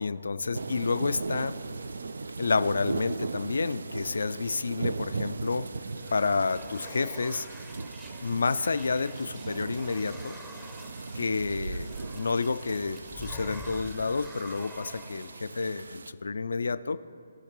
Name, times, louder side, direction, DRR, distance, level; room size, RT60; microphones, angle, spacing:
voice 1, 0.0-1.5 2.4-5.7 6.1-7.5 8.2-10.4 11.2-17.0, left 4 dB, 70° left, 14 dB, 0.4 m, -29 dB
sound 1, 0.5-16.1, right 3 dB, 70° right, 0.4 m, -38 dB
sound 2, 5.6-15.4, equal, 5° right, 0.7 m, -48 dB
17.0 x 5.7 x 3.1 m, 2.6 s
figure-of-eight pair, 145°, 0 cm